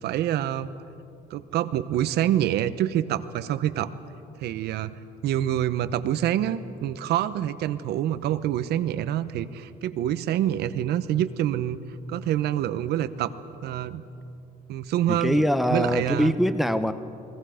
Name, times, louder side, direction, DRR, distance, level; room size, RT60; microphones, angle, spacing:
voice 1, 0.0-0.7 1.3-3.9 4.4-4.9 5.2-11.8 12.1-13.3 13.6-14.0 14.7-15.4 15.7-16.3, right 11 dB, 75° right, 13 dB, 0.9 m, -26 dB
voice 2, 15.1-16.9, equal, ahead, 11 dB, 0.7 m, -23 dB
29.5 x 21.0 x 5.1 m, 2.7 s
cardioid pair, 110°, 17 cm